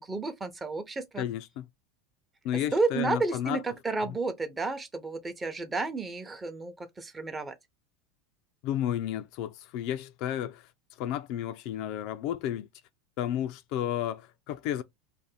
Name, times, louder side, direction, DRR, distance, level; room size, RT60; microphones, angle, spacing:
voice 1, 0.0-1.2 2.7-7.6, right 3 dB, 20° right, 0.7 m, -31 dB
voice 2, 1.2-1.7 2.4-3.6 4.1-4.2 8.6-10.7 11.0-12.7 13.2-14.8, left 11 dB, 60° left, 0.3 m, -32 dB
2.5 x 2.1 x 3.2 m
hypercardioid pair, 100°, 0 cm